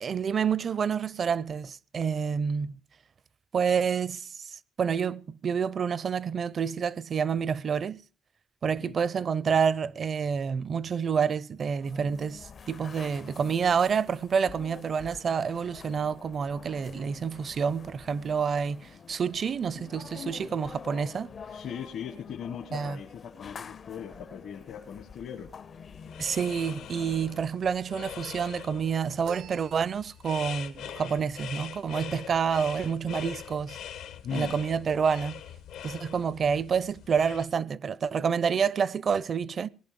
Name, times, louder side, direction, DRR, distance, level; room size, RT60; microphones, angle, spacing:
voice 1, 0.0-2.7 3.5-8.0 8.6-21.3 22.7-23.0 26.2-33.8 34.3-35.4 35.8-39.7, right 6 dB, 50° right, 0.6 m, -28 dB
sound 1, 11.8-27.5, left 6 dB, 45° left, 0.6 m, -47 dB
voice 2, 21.5-25.5 34.2-34.6, left 8 dB, 70° left, 1.5 m, -39 dB
sound 2, 25.9-37.4, left 9 dB, 90° left, 1.6 m, -43 dB
sound 3, 29.2-30.5, right 9 dB, 90° right, 1.0 m, -46 dB
19.0 x 11.0 x 5.2 m
cardioid pair, 90°, 0 cm